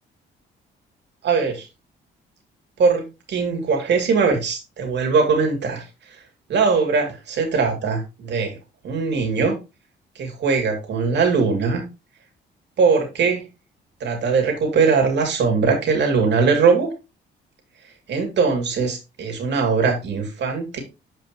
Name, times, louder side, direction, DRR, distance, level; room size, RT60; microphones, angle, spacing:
voice 1, 1.2-1.6 2.8-5.8 6.5-8.6 8.8-9.5 10.2-11.8 12.8-13.4 14.0-16.9 18.1-20.8, right 5 dB, 60° right, 3 dB, 2.5 m, -20 dB
7.6 x 5.0 x 2.9 m, 0.26 s
cardioid pair, 90°, 20 cm